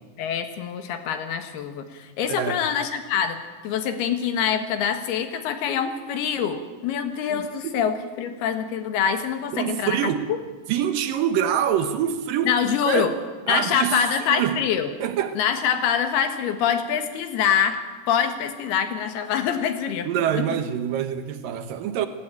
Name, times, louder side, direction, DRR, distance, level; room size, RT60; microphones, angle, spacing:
voice 1, 0.2-3.4 3.6-10.4 12.4-13.1 13.5-14.9 15.4-17.8 18.1-20.1 20.3-20.5, left 8 dB, 70° left, 8 dB, 3.3 m, -25 dB
voice 2, 2.3-2.6 7.3-7.9 9.5-10.2 10.7-13.1 13.5-14.6 15.0-15.4 20.0-22.1, right 9 dB, 70° right, 9 dB, 2.3 m, -25 dB
18.0 x 17.0 x 9.0 m, 1.3 s
omnidirectional pair, 5.0 m